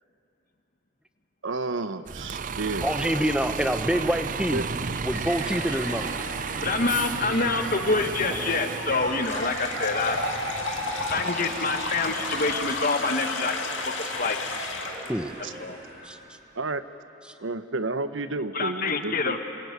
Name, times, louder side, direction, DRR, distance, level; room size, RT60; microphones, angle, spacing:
voice 1, 1.4-2.9 4.5-4.7 15.4-15.5 16.6-16.8 17.4-19.4, right 3 dB, 80° right, 11 dB, 1.0 m, -31 dB
Bus, 2.1-12.8, right 5 dB, 40° right, 0.6 m, -34 dB
voice 2, 2.8-4.6 5.0-6.1 15.1-15.3 16.0-16.2, equal, 5° right, 8 dB, 1.1 m, -26 dB
sound 1, 5.1-16.3, right 2 dB, 60° right, 5.6 m, -37 dB
voice 3, 6.6-10.2 11.1-13.5 14.0-14.4 15.6-15.8 18.5-19.4, left 3 dB, 45° left, 6 dB, 1.7 m, -26 dB
sound 2, 9.2-15.1, left 3 dB, 75° left, 2.3 m, -32 dB
27.5 x 21.5 x 9.5 m, 2.8 s
head